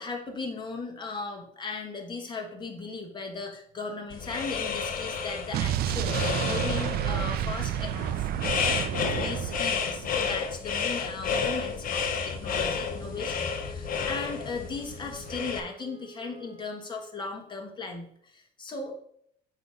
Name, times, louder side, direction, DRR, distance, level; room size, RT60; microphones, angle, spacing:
voice 1, 0.0-19.0, left 4 dB, 25° left, 1 dB, 1.4 m, -37 dB
sound 1, 4.1-15.6, left 6 dB, 55° left, 0.8 m, -31 dB
Explosion, 5.5-10.3, right 12 dB, 65° right, 0.4 m, -30 dB
Wind instrument woodwind instrument, 12.7-17.2, right 1 dB, 35° right, 0.9 m, -49 dB
7.8 x 3.0 x 5.0 m, 0.66 s
cardioid pair, 110°, 17 cm